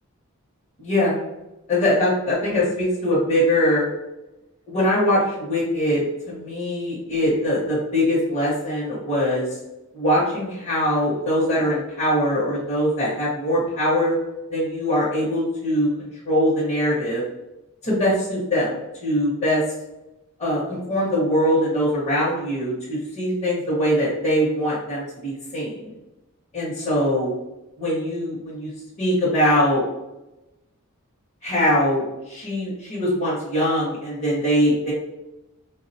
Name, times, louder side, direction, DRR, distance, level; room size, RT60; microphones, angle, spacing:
voice 1, 0.8-1.2 1.7-3.9 4.7-9.5 9.9-14.2 14.5-17.2 17.8-19.6 20.4-25.9 26.5-27.3 27.8-28.7 29.0-29.8 31.4-34.9, equal, 30° left, -7 dB, 0.6 m, -22 dB
3.4 x 2.0 x 2.6 m, 0.98 s
head